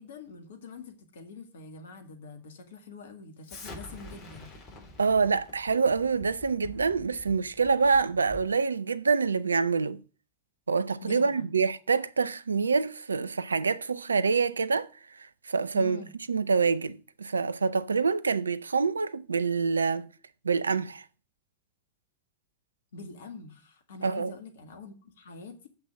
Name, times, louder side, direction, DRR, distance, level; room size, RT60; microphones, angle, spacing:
voice 1, 0.0-4.5 11.0-11.4 15.7-16.1 22.9-25.7, left 4 dB, 65° left, 2.0 m, -45 dB
Explosion, 3.5-8.6, left 2 dB, 35° left, 3.5 m, -47 dB
voice 2, 5.0-10.0 10.7-14.9 15.5-16.0 16.3-20.1 20.4-21.0 24.0-24.3, right 5 dB, 80° right, 0.5 m, -26 dB
7.6 x 5.9 x 7.4 m
figure-of-eight pair, 85°, 0 cm